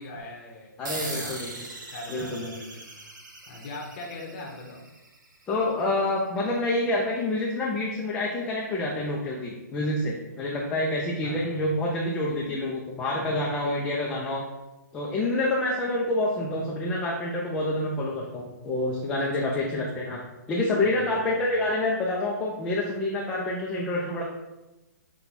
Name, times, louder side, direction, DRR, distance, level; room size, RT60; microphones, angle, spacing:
voice 1, 0.0-1.6 1.9-3.1 3.5-4.8 11.2-11.7 12.4-12.6 19.2-19.7 20.8-21.3, left 2 dB, 35° left, -3 dB, 0.7 m, -41 dB
voice 2, 0.8-1.5 2.1-2.5 5.5-14.4 14.9-20.2 20.5-24.2, left 2 dB, 10° left, -3 dB, 0.3 m, -27 dB
sound 1, 0.8-5.8, right 2 dB, 90° right, 1.1 m, -40 dB
5.8 x 2.2 x 4.0 m, 1.0 s
hypercardioid pair, 165°, 10 cm